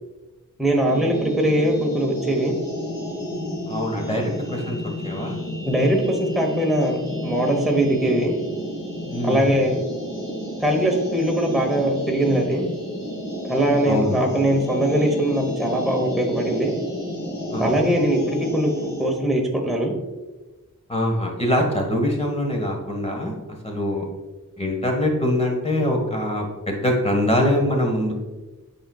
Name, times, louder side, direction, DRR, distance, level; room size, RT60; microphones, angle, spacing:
voice 1, 0.6-2.5 5.7-8.3 9.2-9.8 10.6-12.7 13.4-16.7 17.6-19.9, right 1 dB, ahead, 0 dB, 1.0 m, -21 dB
sound 1, 0.8-19.1, left 1 dB, 85° left, 2.0 m, -31 dB
voice 2, 3.7-4.8 5.0-5.4 9.0-9.6 13.9-14.2 17.5-17.7 20.9-23.3 23.6-24.0 24.6-28.1, left 1 dB, 20° left, 1 dB, 1.5 m, -23 dB
8.8 x 5.2 x 2.4 m, 1.2 s
wide cardioid pair, 55°, 33 cm